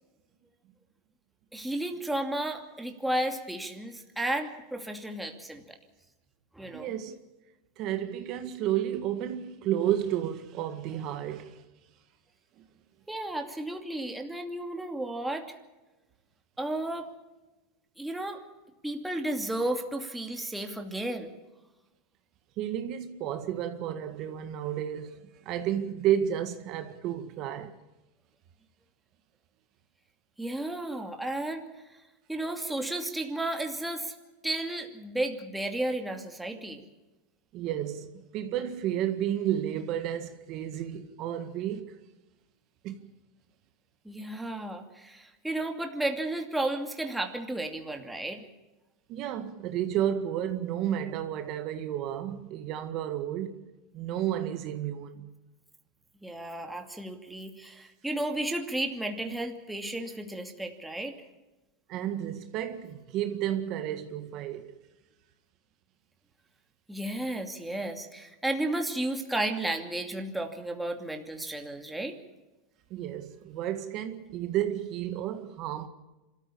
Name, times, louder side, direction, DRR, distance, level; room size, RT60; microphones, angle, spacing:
voice 1, 1.5-5.8 6.5-6.9 13.1-15.6 16.6-17.1 18.0-18.4 18.8-21.3 30.4-31.6 32.3-34.1 34.4-36.8 44.0-48.4 56.2-61.2 66.9-72.1, right 1 dB, 5° right, 2.6 m, -33 dB
voice 2, 6.7-7.1 7.8-11.6 12.6-12.7 22.6-25.2 25.5-27.8 37.5-42.0 42.8-43.1 49.1-53.7 53.9-55.3 61.9-64.8 72.9-75.9, right 11 dB, 45° right, 1.8 m, -32 dB
26.0 x 14.0 x 8.7 m
supercardioid pair, 135°, 0 cm